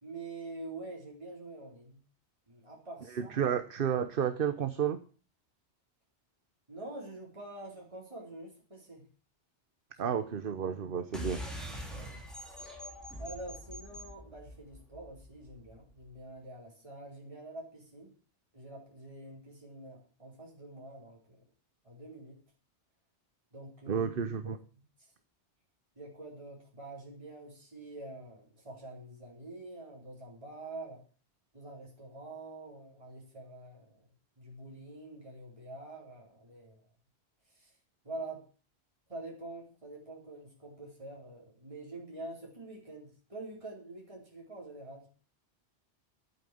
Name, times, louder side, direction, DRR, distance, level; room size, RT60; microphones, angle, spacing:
voice 1, 0.0-2.0 2.5-3.6 6.7-9.0 10.0-10.2 11.9-12.2 13.2-18.2 18.5-21.4 21.8-22.4 23.5-24.1 24.4-24.5 25.0-25.1 26.0-31.0 31.5-34.1 34.4-36.8 37.5-37.7 38.0-38.4 39.1-45.1, right 2 dB, 30° right, -3 dB, 4.2 m, -46 dB
voice 2, 3.1-5.0 10.0-11.4 23.9-24.6, right 8 dB, 55° right, 10 dB, 1.0 m, -31 dB
sound 1, 11.1-16.0, equal, ahead, 3.5 m, -44 dB
11.0 x 9.0 x 7.8 m, 0.39 s
omnidirectional pair, 1.1 m